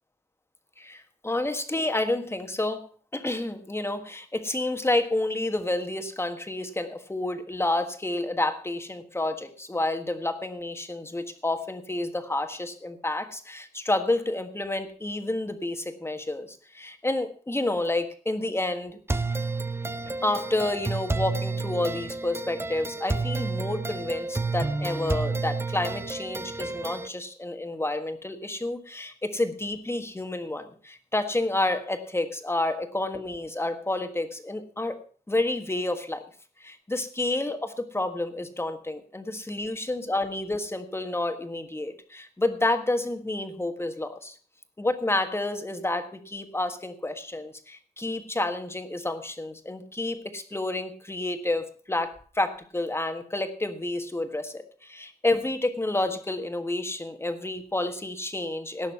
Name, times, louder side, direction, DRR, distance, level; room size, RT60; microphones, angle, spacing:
voice 1, 0.8-2.8 3.1-19.0 20.2-35.0 35.3-36.2 36.6-44.4 44.8-58.9, left 2 dB, 15° left, 7 dB, 1.5 m, -29 dB
sound 1, 19.1-27.1, right 3 dB, 15° right, 0.5 m, -30 dB
17.5 x 6.5 x 5.9 m, 0.41 s
wide cardioid pair, 150°, 15 cm